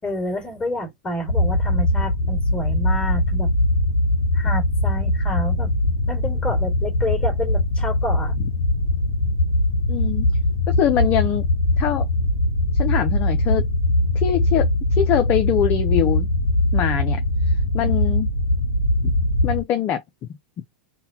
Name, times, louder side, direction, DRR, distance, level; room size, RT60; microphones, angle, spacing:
voice 1, 0.0-3.5 4.3-5.7 6.1-8.4, left 1 dB, 20° left, 2.0 m, -29 dB
sound 1, 1.3-19.6, left 1 dB, 85° left, 0.6 m, -21 dB
voice 2, 9.9-10.3 10.7-11.5 11.8-12.1 12.7-13.7 14.1-16.3 16.7-18.3 19.0-19.1 19.4-20.0, left 10 dB, 40° left, 0.5 m, -23 dB
3.9 x 2.2 x 2.8 m
hypercardioid pair, 105°, 5 cm